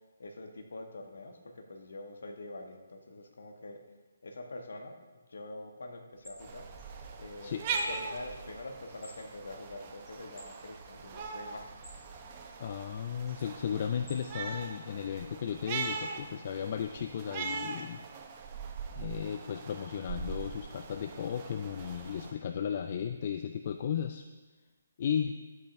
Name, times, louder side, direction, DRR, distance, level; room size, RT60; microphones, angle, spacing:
voice 1, 0.0-3.8 4.2-6.7 7.2-11.7, left 2 dB, 60° left, 4 dB, 1.2 m, -45 dB
sound 1, 6.1-14.6, right 1 dB, ahead, 3.1 m, -54 dB
sound 2, 6.4-22.3, right 5 dB, 30° right, 0.8 m, -41 dB
voice 2, 12.6-18.0 19.0-24.3 25.0-25.4, left 8 dB, 40° left, 8 dB, 0.4 m, -35 dB
12.5 x 8.3 x 2.6 m, 1.2 s
figure-of-eight pair, 140°, 0 cm